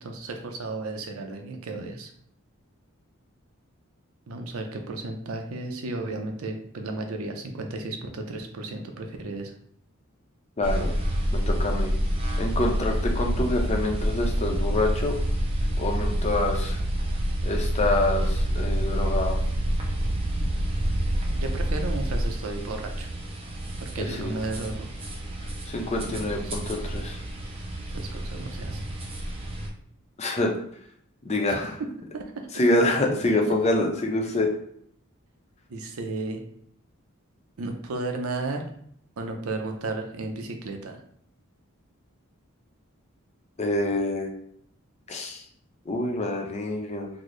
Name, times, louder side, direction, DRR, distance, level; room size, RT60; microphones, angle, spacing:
voice 1, 0.0-2.1 4.3-9.5 21.4-23.1 23.8-24.9 25.9-26.6 27.9-28.8 32.1-32.5 33.5-33.6 35.7-36.4 37.6-38.6 39.2-41.0, right 2 dB, 85° right, 4 dB, 0.5 m, -34 dB
voice 2, 10.6-10.9 11.3-11.9 12.4-15.1 15.8-16.8 17.4-19.4 24.0-24.4 25.7-27.2 30.2-30.5 31.2-31.7 32.5-34.5 43.6-44.3 45.1-45.4 45.9-47.1, left 2 dB, 30° left, 1 dB, 0.5 m, -26 dB
sound 1, 10.6-29.7, equal, 25° right, 0.6 m, -28 dB
3.9 x 2.0 x 3.1 m, 0.68 s
head